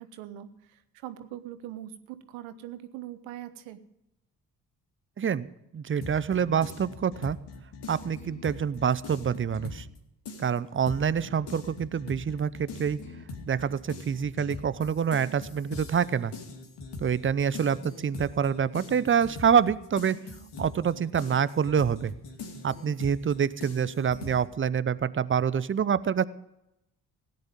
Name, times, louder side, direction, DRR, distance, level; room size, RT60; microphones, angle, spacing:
voice 1, 0.0-3.8, right 12 dB, 70° right, 10 dB, 1.3 m, -42 dB
voice 2, 5.2-5.5 5.7-7.4 7.9-9.9 10.4-13.0 13.5-16.3 17.0-20.2 20.6-22.1 22.6-26.2, right 7 dB, 25° right, 17 dB, 0.7 m, -26 dB
sound 1, 6.0-10.0 10.2-24.4, left 3 dB, 55° left, 2.7 m, -42 dB
17.0 x 9.8 x 5.2 m, 0.86 s
hypercardioid pair, 45°, 47 cm